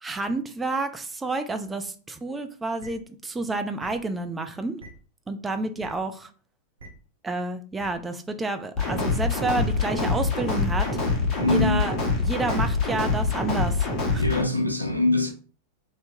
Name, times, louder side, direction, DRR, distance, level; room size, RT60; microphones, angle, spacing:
voice 1, 0.0-4.8 5.3-6.3 7.2-10.9 11.5-14.2, right 2 dB, 10° right, 0.4 m, -30 dB
sound 1, 2.8-2.9 3.8-3.9 4.8-4.9 5.8-5.9 6.8-6.9 7.8-7.9 8.8-8.9 9.8-9.9 10.8-10.9 11.8-11.9 12.5-12.6, right 2 dB, 70° right, 0.8 m, -42 dB
sound 2, 8.8-14.4, left 3 dB, 35° left, 0.9 m, -25 dB
voice 2, 11.4-11.8 14.1-15.3, left 2 dB, 90° left, 0.6 m, -23 dB
3.3 x 2.8 x 2.6 m
figure-of-eight pair, 90°, 0 cm